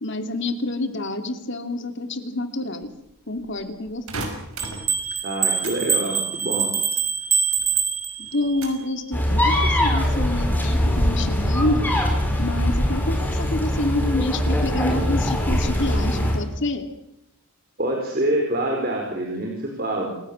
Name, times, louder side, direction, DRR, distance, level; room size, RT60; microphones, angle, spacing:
voice 1, 0.0-2.9 3.3-4.3 8.2-11.9 12.4-16.9, left 2 dB, 55° left, 8 dB, 2.6 m, -27 dB
sound 1, 4.1-5.8 6.0-7.8 8.1-8.9 9.4-9.9, right 2 dB, 75° right, 5.8 m, -36 dB
sound 2, 4.6-8.6, right 6 dB, 15° right, 3.1 m, -24 dB
voice 2, 5.2-6.7 17.8-20.1, right 1 dB, 45° right, 1 dB, 4.7 m, -26 dB
sound 3, 9.1-16.4, left 1 dB, 10° left, 5.2 m, -22 dB
28.0 x 17.0 x 8.6 m, 0.82 s
head